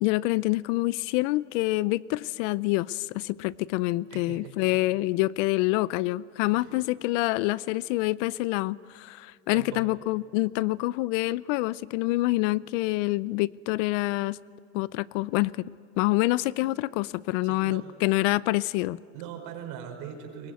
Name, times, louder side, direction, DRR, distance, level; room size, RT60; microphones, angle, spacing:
voice 1, 0.0-14.4 14.7-15.7 16.0-19.0, left 20 dB, 65° left, 22 dB, 0.6 m, -26 dB
voice 2, 4.1-4.8 6.5-6.8 9.5-9.9 17.4-17.8 19.1-20.5, right 8 dB, 60° right, 4 dB, 5.0 m, -41 dB
22.5 x 21.5 x 9.5 m, 2.2 s
supercardioid pair, 130°, 39 cm